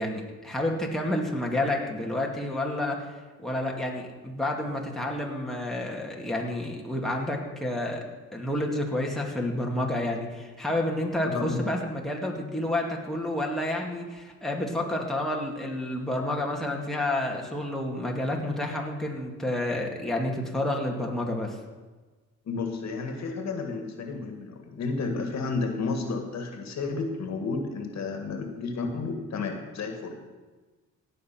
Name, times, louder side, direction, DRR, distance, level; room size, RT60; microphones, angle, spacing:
voice 1, 0.0-3.0 3.4-8.0 8.3-21.6, left 1 dB, ahead, -1 dB, 2.2 m, -29 dB
voice 2, 11.3-11.7 22.5-30.2, left 4 dB, 60° left, 5 dB, 1.9 m, -32 dB
17.0 x 6.7 x 5.9 m, 1.3 s
cardioid pair, 90°, 30 cm